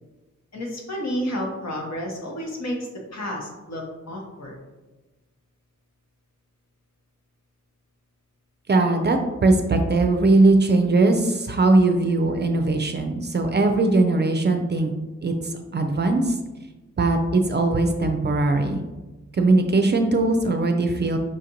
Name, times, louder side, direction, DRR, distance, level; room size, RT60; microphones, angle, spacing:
voice 1, 0.5-2.8 3.1-4.6, equal, 60° left, -1 dB, 1.1 m, -31 dB
voice 2, 8.7-14.9 15.2-15.3 15.7-16.3 17.0-18.8 19.4-21.2, right 2 dB, 35° right, 5 dB, 0.4 m, -20 dB
5.0 x 2.5 x 2.8 m, 1.1 s
cardioid pair, 60°, 30 cm